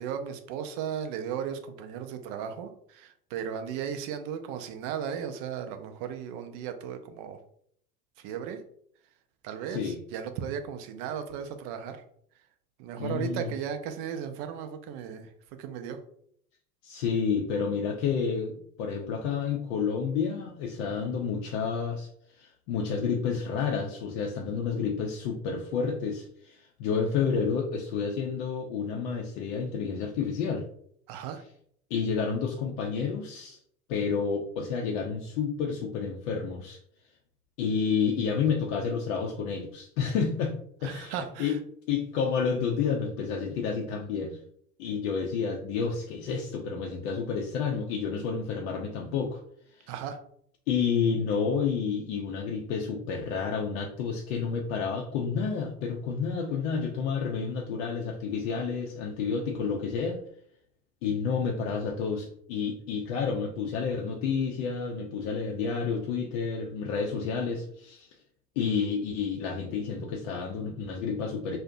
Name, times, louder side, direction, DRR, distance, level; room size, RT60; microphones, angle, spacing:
voice 1, 0.0-7.4 8.2-8.6 9.4-12.0 12.8-15.3 15.6-16.0 31.1-31.4 40.8-41.6 49.9-50.2, right 8 dB, 45° right, 7 dB, 0.5 m, -36 dB
voice 2, 9.7-10.0 13.0-13.5 16.8-30.6 31.9-33.6 33.9-36.8 37.6-40.5 40.8-41.1 41.4-41.6 41.9-44.4 44.8-49.4 49.7-49.9 50.7-60.2 61.0-68.1 68.6-71.6, left 6 dB, 55° left, 0 dB, 0.5 m, -30 dB
2.5 x 2.1 x 2.5 m, 0.65 s
figure-of-eight pair, 75°, 46 cm